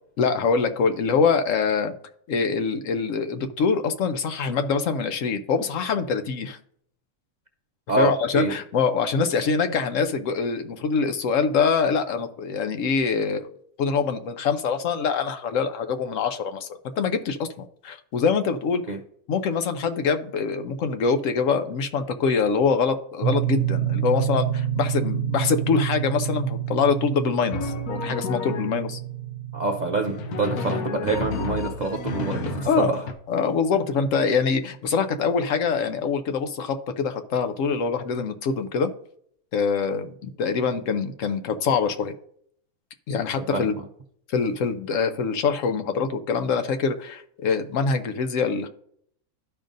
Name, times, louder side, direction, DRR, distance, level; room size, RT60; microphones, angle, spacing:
voice 1, 0.2-1.9 2.3-6.6 8.0-13.5 13.8-18.8 19.3-29.0 32.6-32.9 33.3-38.9 39.5-42.1 43.1-43.7 44.3-48.7, left 5 dB, 70° left, 7 dB, 0.9 m, -24 dB
voice 2, 7.9-8.5 18.9-19.0 29.5-33.0 43.5-43.8, right 3 dB, 55° right, 3 dB, 0.5 m, -26 dB
sound 1, 23.2-32.8, right 11 dB, 70° right, 0.9 m, -29 dB
Drum, 27.5-29.0 30.1-33.1, left 5 dB, 90° left, 1.2 m, -31 dB
12.5 x 5.1 x 2.6 m, 0.64 s
omnidirectional pair, 1.5 m